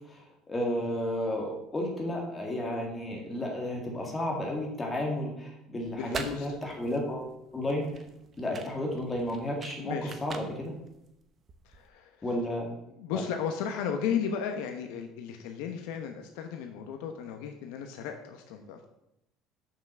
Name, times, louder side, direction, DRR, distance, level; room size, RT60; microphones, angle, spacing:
voice 1, 0.0-7.9 8.4-9.9 10.2-10.7 12.2-12.7 13.1-13.2, left 1 dB, 15° left, 0 dB, 1.9 m, -32 dB
sound 1, 5.8-11.9, right 5 dB, 25° right, 0.8 m, -44 dB
voice 2, 5.9-6.6 9.8-10.1 11.6-12.3 13.0-18.8, left 7 dB, 85° left, 5 dB, 1.0 m, -35 dB
7.2 x 5.9 x 6.5 m, 0.84 s
cardioid pair, 175°, 0 cm